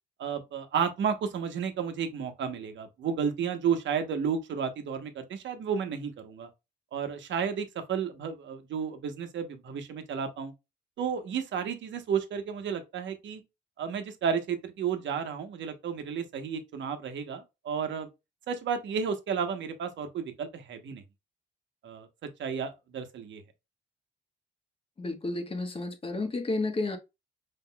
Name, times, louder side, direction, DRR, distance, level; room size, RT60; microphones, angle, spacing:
voice 1, 0.2-6.5 6.9-10.5 11.0-13.4 13.8-18.1 18.5-21.0 21.8-22.1 22.4-23.4, right 7 dB, 70° right, 1.1 m, -32 dB
voice 2, 25.0-27.0, left 2 dB, 30° left, 1.2 m, -31 dB
5.6 x 3.5 x 2.3 m
cardioid pair, 90°, 20 cm